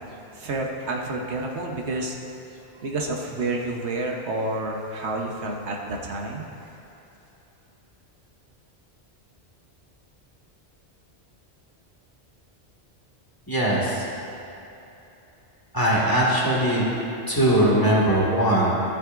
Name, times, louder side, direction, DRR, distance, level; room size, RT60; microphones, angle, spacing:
voice 1, 0.3-2.2 2.7-6.5, right 2 dB, 85° right, 0 dB, 1.3 m, -29 dB
voice 2, 13.5-14.1 15.7-16.9 17.3-18.7, right 1 dB, 20° left, -6 dB, 1.8 m, -20 dB
14.0 x 9.7 x 2.5 m, 2.9 s
omnidirectional pair, 1.1 m